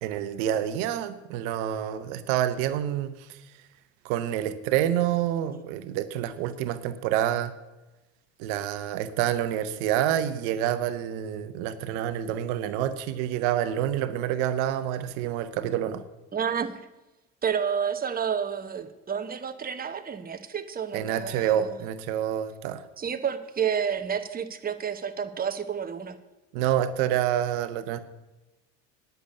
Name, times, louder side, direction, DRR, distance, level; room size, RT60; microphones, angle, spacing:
voice 1, 0.0-3.4 4.0-7.5 8.4-16.0 20.9-22.8 26.5-28.0, right 11 dB, 75° right, 12 dB, 0.9 m, -27 dB
voice 2, 16.3-16.8 17.4-21.7 23.0-26.2, right 7 dB, 25° right, 9 dB, 1.1 m, -30 dB
10.0 x 6.8 x 8.5 m, 1.0 s
hypercardioid pair, 75°, 36 cm